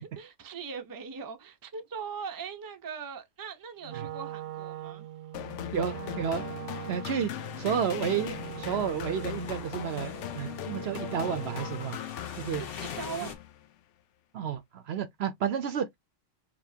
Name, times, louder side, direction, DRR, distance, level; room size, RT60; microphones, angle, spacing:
voice 1, 0.2-5.1 12.8-13.4, right 6 dB, 25° right, 0.6 m, -40 dB
Wind instrument woodwind instrument, 3.8-12.0, right 14 dB, 90° right, 1.0 m, -42 dB
sound 1, 5.3-13.7, left 12 dB, 75° left, 0.9 m, -39 dB
voice 2, 5.7-6.4 6.9-7.3 7.6-12.0 12.4-12.6 13.2-13.3 14.3-16.0, right 7 dB, 65° right, 0.8 m, -31 dB
sound 2, 7.3-13.4, left 6 dB, 50° left, 1.1 m, -46 dB
5.3 x 2.8 x 2.7 m
omnidirectional pair, 1.3 m